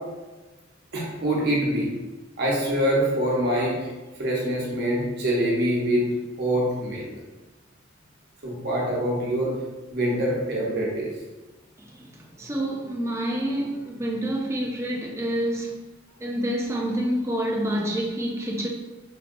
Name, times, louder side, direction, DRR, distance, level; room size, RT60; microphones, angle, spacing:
voice 1, 0.9-1.9 2.4-3.7 4.2-6.0 6.4-7.1 8.4-9.5 9.9-11.1, right 1 dB, 55° right, -3 dB, 0.9 m, -24 dB
voice 2, 11.9-15.8 16.2-18.7, right 1 dB, 15° right, -1 dB, 0.4 m, -28 dB
4.0 x 2.2 x 2.5 m, 1.1 s
head